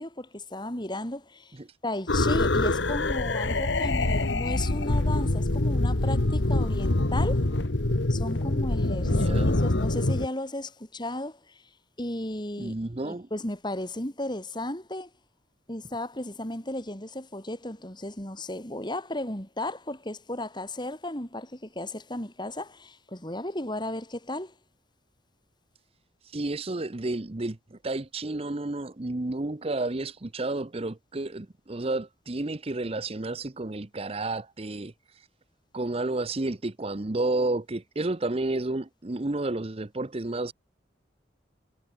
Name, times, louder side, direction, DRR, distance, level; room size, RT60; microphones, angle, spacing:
voice 1, 0.0-1.6 1.8-7.4 8.1-11.6 12.0-12.7 13.0-15.1 15.7-24.5, left 1 dB, 25° left, 6.0 m, -34 dB
sound 1, 2.1-10.3, left 2 dB, 80° left, 1.5 m, -25 dB
voice 2, 9.0-9.5 12.6-13.3 26.2-35.2 35.7-40.5, right 2 dB, 35° right, 0.8 m, -31 dB
head